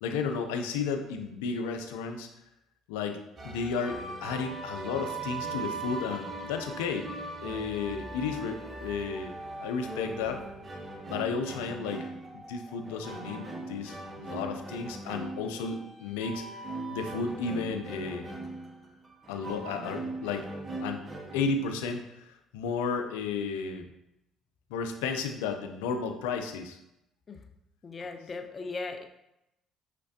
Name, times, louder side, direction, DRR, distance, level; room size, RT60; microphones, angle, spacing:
voice 1, 0.0-2.3 2.9-7.1 7.4-9.3 9.6-10.4 11.1-12.0 12.5-16.7 16.9-18.3 19.3-20.5 20.8-21.0 21.3-23.9 24.7-26.8, left 5 dB, 85° left, 5 dB, 0.5 m, -33 dB
sound 1, 3.4-21.4, right 2 dB, 30° right, 0.7 m, -40 dB
voice 2, 27.8-29.1, left 3 dB, 40° left, 6 dB, 0.6 m, -38 dB
5.8 x 3.2 x 2.7 m, 0.86 s
supercardioid pair, 65°, 0 cm